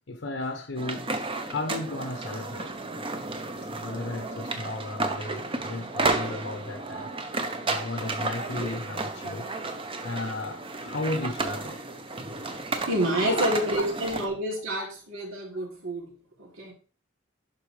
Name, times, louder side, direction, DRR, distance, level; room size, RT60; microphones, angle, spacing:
voice 1, 0.1-1.1 1.5-2.7 3.7-7.1 7.6-9.5 10.0-11.8 13.2-13.6 14.8-14.9, left 2 dB, 70° left, 0.9 m, -34 dB
sound 1, 0.8-14.3, right 3 dB, 25° right, 0.7 m, -32 dB
voice 2, 12.9-16.1 16.4-16.7, right 1 dB, 85° right, 3.1 m, -28 dB
11.5 x 4.1 x 3.3 m
head